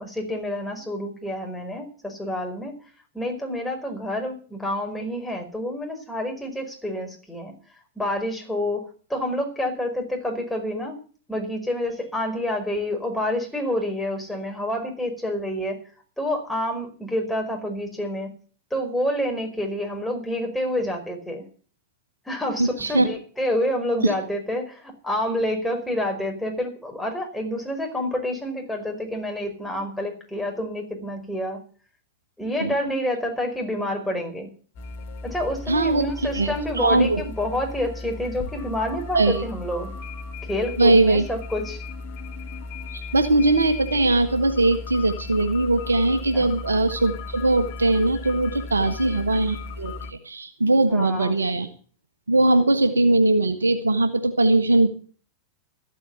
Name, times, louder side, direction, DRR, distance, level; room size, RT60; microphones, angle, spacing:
voice 1, 0.0-2.7 3.1-7.5 7.9-8.8 9.1-11.0 11.3-15.8 16.2-18.3 18.7-21.4 22.3-31.6 32.4-34.5 35.2-39.9 40.5-41.8 46.3-46.5 48.8-49.0 50.9-51.3, left 1 dB, 5° left, 1 dB, 5.1 m, -28 dB
voice 2, 22.6-23.1 24.0-24.1 32.6-32.7 35.7-37.2 39.1-39.4 40.8-41.3 42.9-51.7 52.3-54.9, right 2 dB, 75° right, 9 dB, 1.5 m, -20 dB
sound 1, 34.8-50.1, left 3 dB, 50° left, 1.7 m, -36 dB
14.0 x 8.4 x 8.3 m, 0.41 s
figure-of-eight pair, 90°, 0 cm